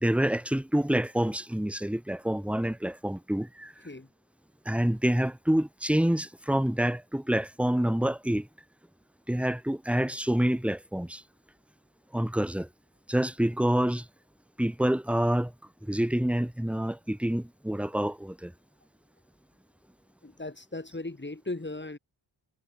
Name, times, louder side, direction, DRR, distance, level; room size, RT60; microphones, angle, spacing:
voice 1, 0.0-3.7 4.6-8.5 9.3-11.2 12.1-12.7 13.1-14.0 14.6-15.5 15.9-18.5, right 1 dB, 5° right, 1.5 m, -27 dB
voice 2, 20.2-22.0, left 2 dB, 25° left, 2.8 m, -37 dB
wide cardioid pair, 95°, 48 cm